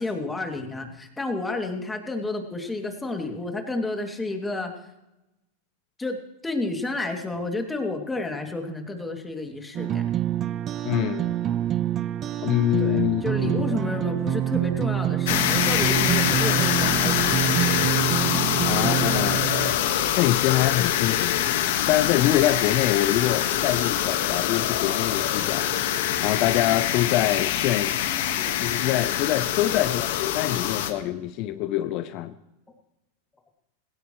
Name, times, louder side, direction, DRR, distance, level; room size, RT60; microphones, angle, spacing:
voice 1, 0.0-4.7 6.0-6.2 6.4-10.0 12.8-17.4 28.4-28.6 29.6-29.7 31.0-31.1, left 2 dB, 10° left, 2.6 m, -31 dB
sound 1, 9.7-19.7, right 12 dB, 35° right, 0.7 m, -26 dB
voice 2, 10.8-11.3 12.4-13.7 18.7-19.4 20.2-21.4 21.9-25.7 26.2-28.0 28.6-32.4, left 14 dB, 50° left, 0.7 m, -25 dB
sound 2, 15.3-30.9, left 11 dB, 65° left, 1.5 m, -24 dB
19.0 x 16.5 x 3.2 m
hypercardioid pair, 100°, 0 cm